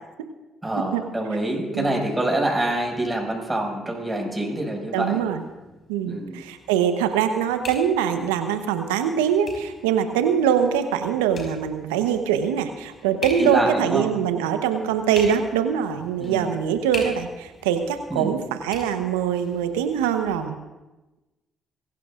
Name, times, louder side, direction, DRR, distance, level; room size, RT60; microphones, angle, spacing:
voice 1, 0.6-5.2 6.1-6.4 13.4-14.0 16.2-16.5 18.1-18.3, right 1 dB, 15° right, -1 dB, 6.3 m, -26 dB
voice 2, 4.9-5.4 5.9-20.6, right 8 dB, 85° right, 8 dB, 1.0 m, -23 dB
sound 1, 5.2-20.3, left 2 dB, 50° left, 5.1 m, -42 dB
22.5 x 16.0 x 2.5 m, 1.1 s
hypercardioid pair, 50°, 0 cm